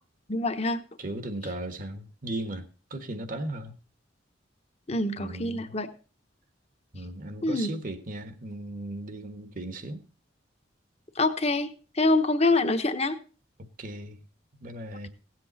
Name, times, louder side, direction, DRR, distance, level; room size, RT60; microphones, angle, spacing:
voice 1, 0.3-0.8 4.9-5.9 7.4-7.7 11.2-11.7 12.0-13.2, left 2 dB, 35° left, 1.1 m, -25 dB
voice 2, 1.0-3.8 5.2-5.7 6.9-10.0 13.8-14.2 14.6-15.1, right 1 dB, 45° right, 1.2 m, -37 dB
17.0 x 7.8 x 4.1 m
head